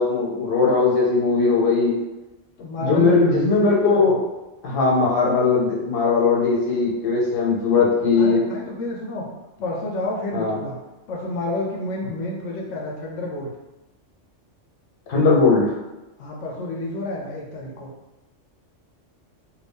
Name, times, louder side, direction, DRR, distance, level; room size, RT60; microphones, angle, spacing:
voice 1, 0.0-2.0 2.8-4.2 4.6-8.4 10.3-10.6 15.1-15.7, left 4 dB, 50° left, -3 dB, 0.9 m, -19 dB
voice 2, 2.6-4.1 8.2-9.3 9.6-10.8 11.1-13.5 16.2-17.9, left 2 dB, 80° left, -2 dB, 1.0 m, -29 dB
2.7 x 2.6 x 3.5 m, 1.0 s
omnidirectional pair, 1.3 m